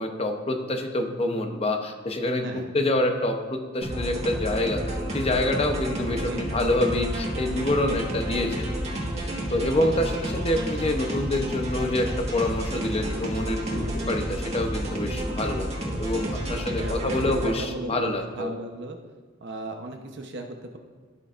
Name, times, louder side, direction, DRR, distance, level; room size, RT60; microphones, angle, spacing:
voice 1, 0.0-8.7 9.5-18.5, left 1 dB, 30° left, 4 dB, 0.7 m, -27 dB
voice 2, 2.4-2.7 6.2-6.4 13.7-14.0 16.7-19.0 19.4-20.8, right 1 dB, 55° right, 4 dB, 0.8 m, -36 dB
sound 1, 3.8-17.5, equal, 35° right, 1.6 m, -30 dB
13.5 x 6.7 x 2.5 m, 1.4 s
head